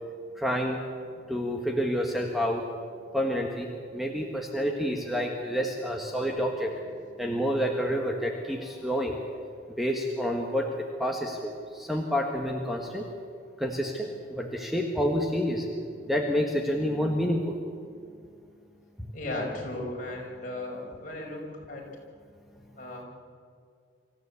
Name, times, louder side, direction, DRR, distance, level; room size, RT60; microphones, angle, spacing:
voice 1, 0.4-0.8 1.3-2.6 3.1-3.7 3.9-6.7 7.2-9.2 9.8-10.7 11.0-13.0 13.6-15.6 16.1-17.5, equal, ahead, 1 dB, 1.6 m, -28 dB
voice 2, 19.1-21.9 22.8-23.0, left 1 dB, 45° left, -2 dB, 5.4 m, -36 dB
25.5 x 14.5 x 8.3 m, 2.3 s
head